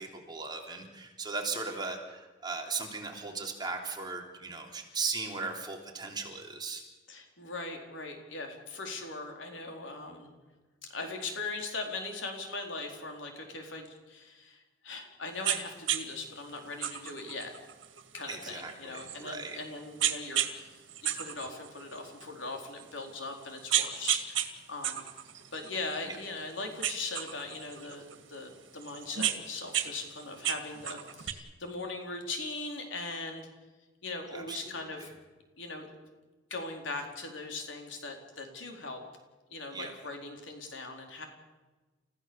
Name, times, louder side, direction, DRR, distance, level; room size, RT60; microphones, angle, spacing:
voice 1, 0.0-6.8 18.3-19.6 26.0-26.2 34.3-35.1 39.7-39.9, right 4 dB, 25° right, 1 dB, 3.4 m, -38 dB
voice 2, 7.1-10.3 10.9-17.5 18.1-25.1 25.5-33.5 34.0-35.1 35.6-35.9 36.5-39.0 39.5-41.2, left 3 dB, 80° left, 3 dB, 4.2 m, -40 dB
sound 1, 15.4-15.6 15.9-16.0 16.8-19.5 20.0-20.5 20.9-22.2 22.8-22.9 23.4-24.5 24.8-26.4 26.8-28.2 28.8-29.9 30.2-31.3, right 10 dB, 85° right, 2.0 m, -32 dB
30.0 x 15.5 x 7.1 m, 1.2 s
head